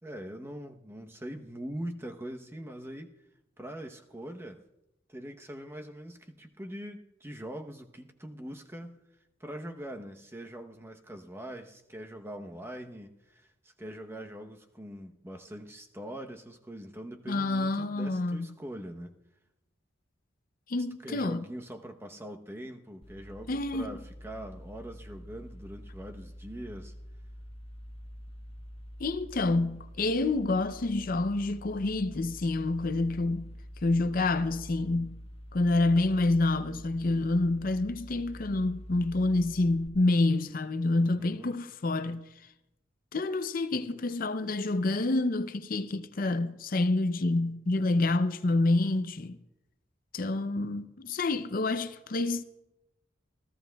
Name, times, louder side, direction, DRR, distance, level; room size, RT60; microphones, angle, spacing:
voice 1, 0.0-3.1 3.6-4.6 5.1-9.0 9.4-19.2 21.0-26.9 41.0-41.5, right 1 dB, 15° right, 0.8 m, -42 dB
voice 2, 17.3-18.5 20.7-21.4 23.5-24.0 29.0-33.5 33.8-35.2 35.5-42.3 43.1-49.4 50.1-52.4, left 2 dB, 50° left, 0.5 m, -28 dB
sound 1, 23.0-39.9, equal, 30° left, 0.9 m, -46 dB
27.0 x 15.0 x 2.3 m
head